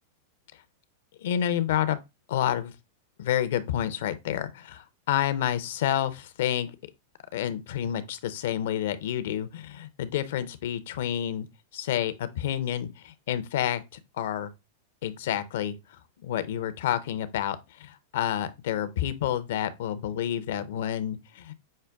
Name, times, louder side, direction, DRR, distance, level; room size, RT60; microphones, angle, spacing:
voice 1, 1.2-2.0 2.3-2.7 3.2-6.7 7.3-11.5 11.7-13.8 14.2-14.5 15.0-15.7 16.2-21.5, left 10 dB, 70° left, 0.6 m, -29 dB
6.4 x 2.2 x 3.4 m
hypercardioid pair, 115°, 0 cm